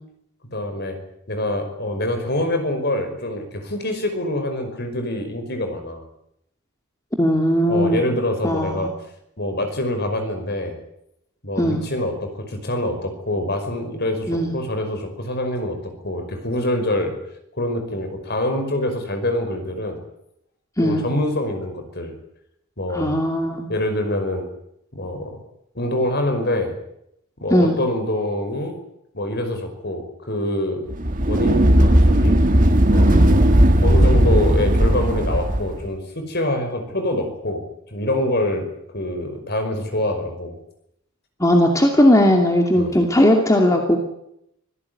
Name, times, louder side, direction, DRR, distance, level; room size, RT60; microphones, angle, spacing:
voice 1, 0.5-1.0 1.3-6.0 7.7-8.9 9.4-10.8 11.4-17.1 17.5-20.0 20.8-22.1 22.8-23.2 23.7-24.4 24.9-25.4 25.8-26.8 27.4-28.7 29.1-30.9 31.3-32.4 32.9-33.6 33.8-37.6 37.9-38.6 38.9-40.6 42.8-42.9, left 1 dB, 45° left, 6 dB, 5.4 m, -25 dB
voice 2, 7.2-8.1 8.4-8.9 11.6-11.8 14.3-14.6 20.8-21.0 22.9-23.6 27.5-27.8 41.4-44.0, equal, 15° left, 2 dB, 2.5 m, -17 dB
sound 1, 30.9-35.8, right 1 dB, 35° right, 1.6 m, -16 dB
25.0 x 17.0 x 9.7 m, 0.79 s
head